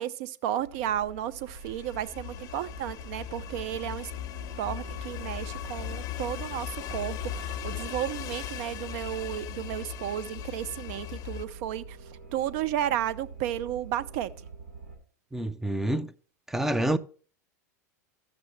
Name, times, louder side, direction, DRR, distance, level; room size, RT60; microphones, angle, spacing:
voice 1, 0.0-4.1 4.6-14.5, right 11 dB, 60° right, 0.6 m, -33 dB
sound 1, 0.6-15.0, right 4 dB, 80° right, 1.9 m, -47 dB
sound 2, 1.4-11.5, left 11 dB, 45° left, 0.6 m, -38 dB
voice 2, 15.3-16.1 16.5-17.0, right 1 dB, 5° right, 0.5 m, -27 dB
15.0 x 6.1 x 3.3 m
hypercardioid pair, 95°, 9 cm